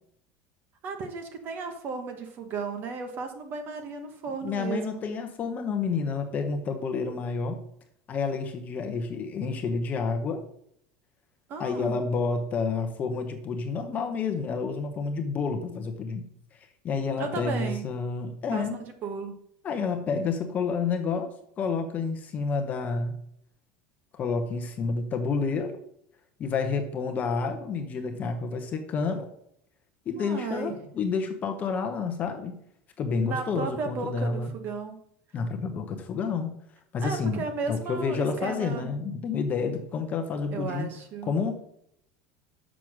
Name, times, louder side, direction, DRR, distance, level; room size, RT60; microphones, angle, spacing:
voice 1, 0.8-5.0 11.5-12.0 17.2-17.9 18.5-19.3 30.1-30.9 33.2-35.0 37.0-38.9 40.5-41.3, right 4 dB, 35° right, 6 dB, 1.2 m, -34 dB
voice 2, 4.4-7.6 8.1-10.4 11.6-16.3 16.8-18.8 19.6-23.1 24.1-25.8 26.4-29.3 30.1-32.6 33.0-34.5 35.3-36.6 36.9-40.9 41.3-41.6, left 4 dB, 25° left, 6 dB, 0.9 m, -29 dB
6.9 x 6.2 x 6.1 m, 0.71 s
cardioid pair, 175°, 6 cm